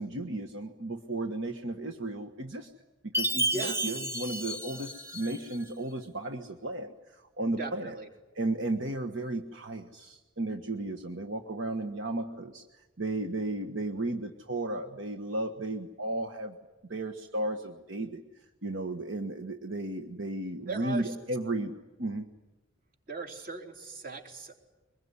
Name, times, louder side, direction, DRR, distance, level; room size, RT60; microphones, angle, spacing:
voice 1, 0.0-2.7 3.0-7.9 8.3-16.6 16.9-18.2 18.6-22.3, right 2 dB, 75° right, 6 dB, 1.4 m, -34 dB
Chime, 3.1-5.6, right 1 dB, 15° right, 1.5 m, -32 dB
voice 2, 7.6-8.1 20.7-21.2 23.1-24.5, right 3 dB, 50° right, 4 dB, 3.6 m, -38 dB
24.0 x 21.0 x 9.8 m, 1.2 s
head